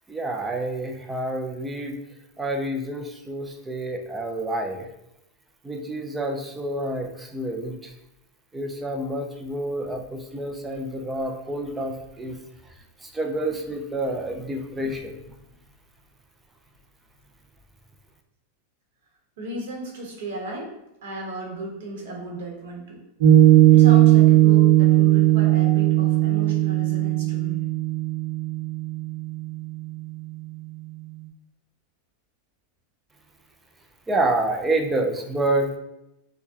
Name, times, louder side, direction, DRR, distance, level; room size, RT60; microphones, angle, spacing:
voice 1, 0.1-2.0 2.4-4.9 5.6-7.9 8.5-12.4 13.0-15.2 34.1-35.8, right 1 dB, 10° right, 3 dB, 0.4 m, -28 dB
voice 2, 19.4-20.7 21.0-23.0 23.7-27.6, right 1 dB, 75° right, -1 dB, 1.0 m, -35 dB
Piano, 23.2-29.9, right 14 dB, 55° right, 0.8 m, -17 dB
4.5 x 2.1 x 2.7 m, 0.88 s
supercardioid pair, 150°, 0 cm